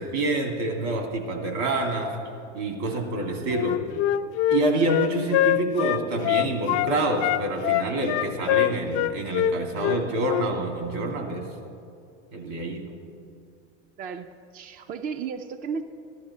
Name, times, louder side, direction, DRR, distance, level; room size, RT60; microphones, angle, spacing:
voice 1, 0.0-2.1 2.5-3.8 4.5-11.4 12.3-12.9, right 2 dB, 70° right, 2 dB, 2.7 m, -27 dB
Wind instrument woodwind instrument, 3.5-6.9 7.2-10.5, left 13 dB, 40° left, 0.4 m, -24 dB
voice 2, 14.0-15.8, right 6 dB, 25° right, 8 dB, 0.4 m, -35 dB
15.0 x 11.5 x 4.3 m, 2.5 s
supercardioid pair, 110°, 36 cm